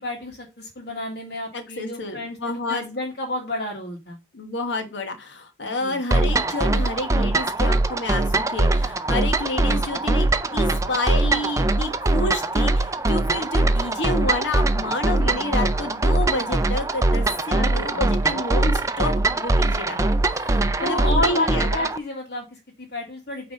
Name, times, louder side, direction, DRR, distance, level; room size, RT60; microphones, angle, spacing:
voice 1, 0.0-4.2 5.6-6.0 15.2-15.6 17.5-18.2 20.8-23.5, left 2 dB, 60° left, -2 dB, 1.8 m, -31 dB
voice 2, 1.5-2.8 4.3-21.7, left 2 dB, 85° left, 6 dB, 1.2 m, -29 dB
sound 1, 6.1-22.0, right 2 dB, 15° right, 0.5 m, -22 dB
9.0 x 3.3 x 5.2 m, 0.28 s
head